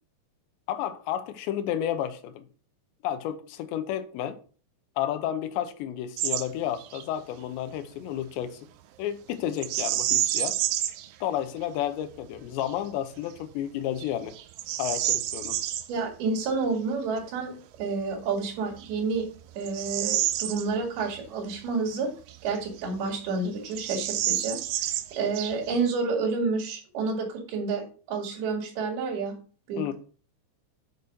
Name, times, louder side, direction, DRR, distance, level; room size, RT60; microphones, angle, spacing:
voice 1, 0.7-2.4 3.0-4.4 5.0-8.6 9.0-10.6 11.2-14.4 14.8-15.6 29.8-29.9, left 11 dB, 80° left, 2.9 m, -31 dB
Bird vocalization bird call bird song, 6.2-6.5 6.8-7.0 9.6-11.1 11.6-11.7 12.3-12.7 13.3-13.4 14.0-15.9 18.0-18.1 18.7-21.2 21.5-21.6 22.3-23.1 23.3-23.4 23.7-25.9, right 13 dB, 85° right, 3.2 m, -29 dB
voice 2, 15.9-17.5 17.8-19.3 19.6-22.1 22.4-24.9 25.2-29.4 29.7-29.9, right 4 dB, 60° right, 3.8 m, -29 dB
6.9 x 6.7 x 6.0 m
omnidirectional pair, 5.3 m